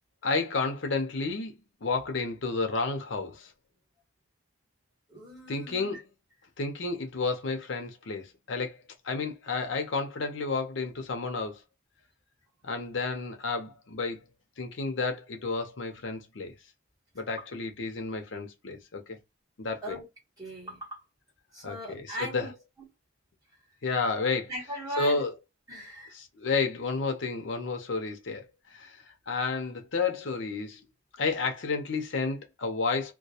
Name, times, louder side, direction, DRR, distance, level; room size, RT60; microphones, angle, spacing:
voice 1, 0.2-3.5 5.5-6.0 6.6-11.6 12.6-14.2 14.6-16.5 17.1-19.2 19.6-20.0 21.6-22.5 23.8-24.5 25.0-25.3 26.1-28.4 28.7-29.0 29.3-30.8 31.2-33.1, left 4 dB, 70° left, 0.7 m, -31 dB
voice 2, 5.1-6.0 19.8-20.0 20.4-21.0 21.5-22.5 24.5-25.2 25.7-26.1, equal, 20° right, 1.3 m, -38 dB
2.3 x 2.2 x 2.7 m
head